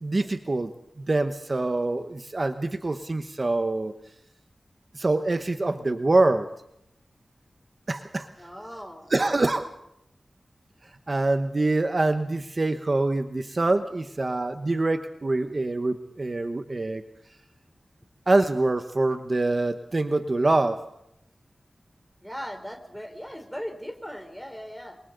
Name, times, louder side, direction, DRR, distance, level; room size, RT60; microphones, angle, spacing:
voice 1, 0.0-3.9 4.9-6.5 7.9-8.3 9.1-9.7 11.1-17.0 18.3-20.8, right 2 dB, 45° right, 8 dB, 1.1 m, -25 dB
voice 2, 8.4-9.1 22.2-25.0, equal, 5° left, 6 dB, 3.6 m, -38 dB
28.0 x 23.5 x 4.0 m, 0.79 s
wide cardioid pair, 80°, 0 cm